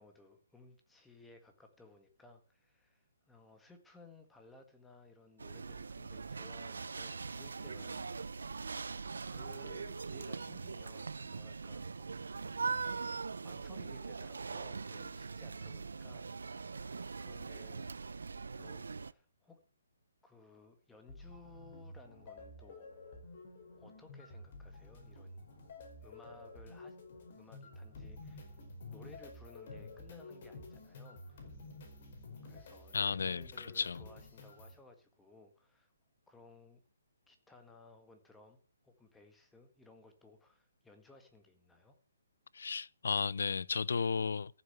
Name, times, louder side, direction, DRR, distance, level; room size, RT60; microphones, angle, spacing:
voice 1, 0.0-8.1 8.6-12.2 12.6-12.9 13.4-19.6 20.2-22.9 23.8-25.4 26.0-27.0 27.3-28.6 28.9-31.5 32.4-35.9 36.3-36.8 37.3-38.6 38.8-42.0, left 2 dB, 5° left, 1.7 m, -59 dB
sound 1, 5.4-19.1, right 4 dB, 90° right, 0.7 m, -41 dB
sound 2, 21.1-34.8, left 2 dB, 45° left, 4.9 m, -51 dB
voice 2, 32.9-34.1 42.5-44.6, left 5 dB, 75° left, 0.6 m, -34 dB
14.5 x 6.9 x 8.1 m
hypercardioid pair, 165°, 0 cm